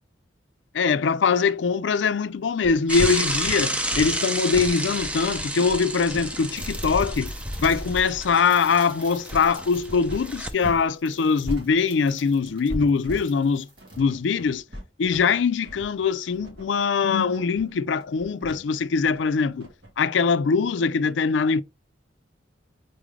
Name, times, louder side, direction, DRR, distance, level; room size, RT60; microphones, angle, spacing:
voice 1, 0.7-7.3 7.6-13.7 14.0-14.6 15.0-19.7 20.0-21.6, left 5 dB, 80° left, 0.4 m, -22 dB
sound 1, 2.6-10.9 11.1-19.9, equal, 75° right, 2.3 m, -38 dB
Bicycle / Mechanisms, 2.9-10.5, right 1 dB, 5° right, 0.5 m, -30 dB
sound 2, 6.4-14.5, right 2 dB, 25° right, 1.7 m, -48 dB
4.1 x 3.7 x 3.2 m
head